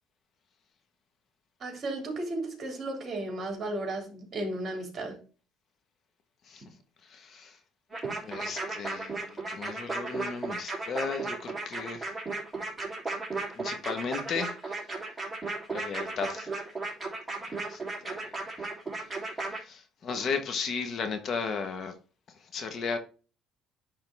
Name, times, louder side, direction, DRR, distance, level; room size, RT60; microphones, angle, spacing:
voice 1, 1.6-5.2, right 2 dB, 35° right, 3.5 m, -34 dB
voice 2, 7.1-7.6 8.2-12.1 13.5-14.8 15.7-16.5 17.7-18.3 19.6-21.9 22.5-23.0, left 5 dB, 45° left, 1.1 m, -35 dB
sound 1, 7.9-19.6, right 3 dB, 15° right, 3.0 m, -35 dB
10.5 x 3.8 x 3.4 m
cardioid pair, 120°, 0 cm